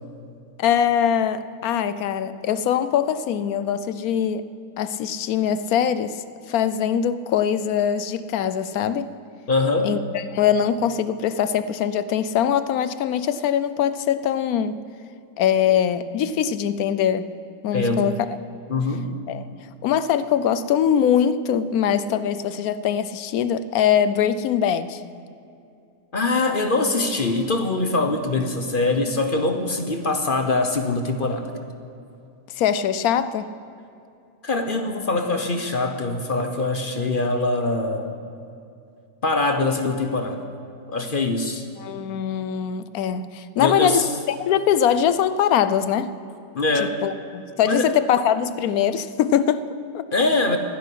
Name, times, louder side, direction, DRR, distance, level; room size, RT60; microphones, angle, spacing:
voice 1, 0.6-4.5 4.8-6.2 6.5-9.1 9.8-14.8 15.4-17.3 17.6-18.4 19.3-19.4 19.8-25.0 32.6-33.5 41.8-46.1 46.8-50.0, left 9 dB, 70° left, 14 dB, 1.1 m, -22 dB
voice 2, 9.5-9.9 17.7-18.1 18.7-19.1 26.1-31.5 34.4-38.2 39.2-40.4 40.9-41.6 43.6-44.1 46.5-47.0 47.6-47.9 50.1-50.6, left 3 dB, 40° left, 6 dB, 1.0 m, -23 dB
11.5 x 11.0 x 10.0 m, 2.6 s
omnidirectional pair, 1.7 m